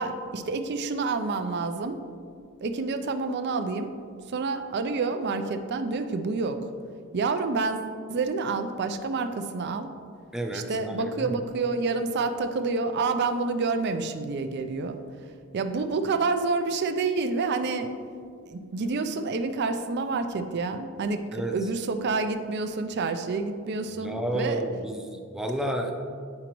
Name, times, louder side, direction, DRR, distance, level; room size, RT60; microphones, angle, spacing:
voice 1, 0.0-2.0 2.6-3.9 4.3-6.6 7.1-9.9 10.5-15.0 15.5-17.9 18.5-24.7, right 4 dB, 55° right, 8 dB, 0.4 m, -28 dB
voice 2, 10.3-11.4 21.3-21.6 24.0-25.9, right 1 dB, 5° right, 3 dB, 0.5 m, -31 dB
9.6 x 5.0 x 3.0 m, 2.2 s
head